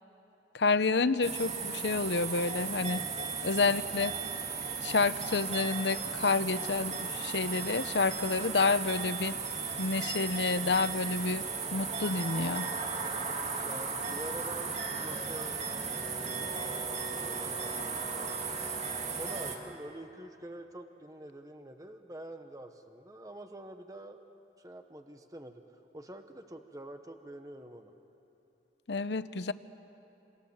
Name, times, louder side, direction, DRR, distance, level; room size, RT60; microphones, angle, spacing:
voice 1, 0.5-3.0 3.4-4.1 4.8-9.3 9.8-11.4 11.7-12.7 28.9-29.5, left 4 dB, 80° left, 13 dB, 0.9 m, -29 dB
sound 1, 1.2-19.6, right 5 dB, 40° right, 2.6 m, -36 dB
voice 2, 13.6-15.6 16.2-18.6 19.2-24.3 24.6-25.6 25.9-27.9, right 1 dB, 20° right, 6 dB, 1.2 m, -46 dB
Brass instrument, 15.6-19.8, equal, 25° left, 2.5 m, -47 dB
28.0 x 27.5 x 7.3 m, 3.0 s
head